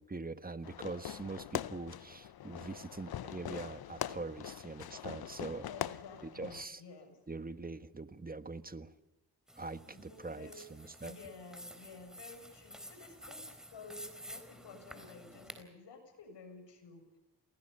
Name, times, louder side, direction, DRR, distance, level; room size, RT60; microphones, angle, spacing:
voice 1, 0.0-5.7 6.2-6.8 7.3-8.9 9.6-11.2, right 3 dB, 20° right, 11 dB, 1.5 m, -43 dB
Fireworks, 0.6-6.7, left 11 dB, 60° left, 0.8 m, -42 dB
voice 2, 5.7-7.2 9.8-10.7 11.0-17.0, left 4 dB, 75° left, 6 dB, 7.2 m, -52 dB
sound 1, 9.5-15.6, equal, ahead, 4.0 m, -51 dB
29.5 x 20.0 x 5.6 m, 1.0 s
cardioid pair, 70°, 42 cm